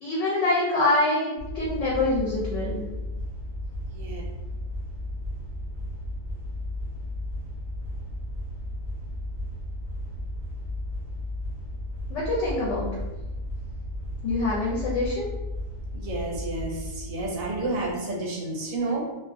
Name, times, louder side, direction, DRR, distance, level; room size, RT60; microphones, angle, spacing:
voice 1, 0.0-2.8 12.1-12.9 14.2-15.2, left 2 dB, 70° left, -5 dB, 0.8 m, -25 dB
sound 1, 1.4-17.9, left 1 dB, 65° right, 0.7 m, -34 dB
voice 2, 15.9-19.0, right 2 dB, 80° right, -2 dB, 1.1 m, -30 dB
2.4 x 2.0 x 2.5 m, 1.1 s
omnidirectional pair, 1.4 m